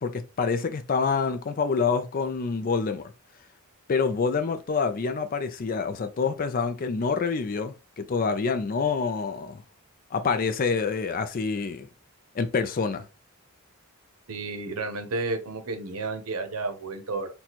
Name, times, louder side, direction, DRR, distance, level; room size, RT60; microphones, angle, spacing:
voice 1, 0.0-3.1 3.9-9.6 10.1-11.9 12.3-13.1, left 5 dB, 40° left, 0.4 m, -27 dB
voice 2, 14.3-17.3, right 3 dB, 75° right, 0.7 m, -32 dB
4.1 x 2.2 x 2.9 m
head